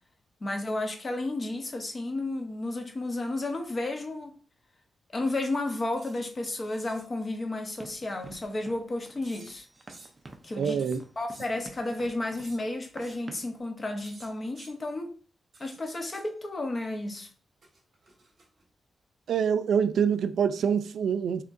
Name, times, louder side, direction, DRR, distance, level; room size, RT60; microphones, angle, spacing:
voice 1, 0.4-4.4 5.1-9.6 10.4-10.8 11.2-15.1 15.6-17.3, left 2 dB, 30° left, 0.8 m, -32 dB
sound 1, 6.0-6.2 6.6-7.1 9.2-10.2 10.8-11.5 12.4-12.6 13.0-13.2 14.0-14.7 15.5-16.3 17.6-18.7, right 2 dB, 45° right, 1.3 m, -53 dB
Run, 7.8-13.6, right 2 dB, 20° right, 0.5 m, -49 dB
voice 2, 10.6-11.0 19.3-21.4, right 7 dB, 85° right, 0.3 m, -25 dB
6.1 x 2.9 x 2.5 m
wide cardioid pair, 150°, 0 cm